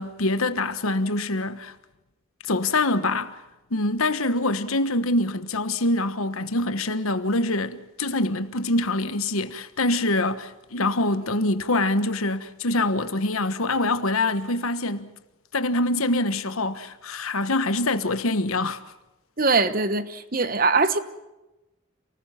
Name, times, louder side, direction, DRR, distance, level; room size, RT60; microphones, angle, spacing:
voice 1, 0.0-1.7 2.4-3.4 3.7-15.1 15.5-18.8, left 2 dB, 90° left, 1.3 m, -25 dB
voice 2, 19.4-21.0, right 3 dB, 40° right, 1.2 m, -22 dB
28.0 x 19.5 x 5.8 m
head